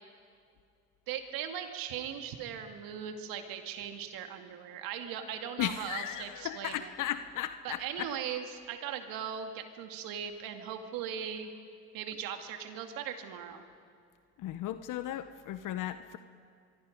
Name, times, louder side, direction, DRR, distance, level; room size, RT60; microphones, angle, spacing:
voice 1, 1.1-6.9 7.6-11.5 11.9-13.6, right 8 dB, 70° right, 6 dB, 2.3 m, -39 dB
voice 2, 5.6-8.1 14.4-16.2, left 12 dB, 60° left, 11 dB, 1.0 m, -36 dB
24.0 x 23.5 x 5.3 m, 2.4 s
hypercardioid pair, 65°, 35 cm